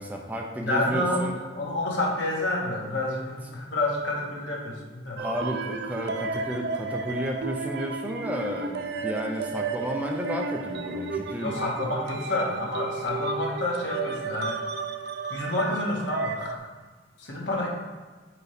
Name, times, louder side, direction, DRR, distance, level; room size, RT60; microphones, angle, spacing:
voice 1, 0.0-1.4 5.2-11.6, equal, 10° right, 1 dB, 0.6 m, -32 dB
voice 2, 0.6-5.2 11.4-14.6 15.3-16.7 17.2-17.7, left 1 dB, 75° left, -3 dB, 1.6 m, -29 dB
sound 1, 5.2-16.6, right 4 dB, 60° right, 0.5 m, -33 dB
4.9 x 4.6 x 5.1 m, 1.4 s
head